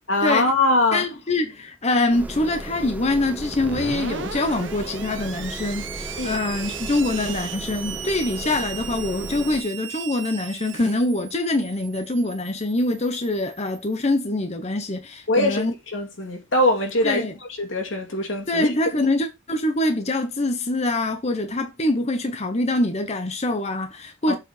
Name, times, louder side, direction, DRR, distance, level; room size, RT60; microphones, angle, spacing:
voice 1, 0.1-1.1 6.2-6.4 15.3-17.3 17.6-18.7 24.3-24.4, left 2 dB, 85° left, 2.5 m, -22 dB
voice 2, 0.9-15.7 17.0-17.3 18.5-24.4, left 2 dB, 35° left, 1.0 m, -24 dB
sound 1, 2.1-9.6, right 1 dB, 10° right, 0.8 m, -36 dB
Screech, 3.5-14.0, right 7 dB, 75° right, 1.1 m, -37 dB
7.5 x 4.4 x 5.0 m
head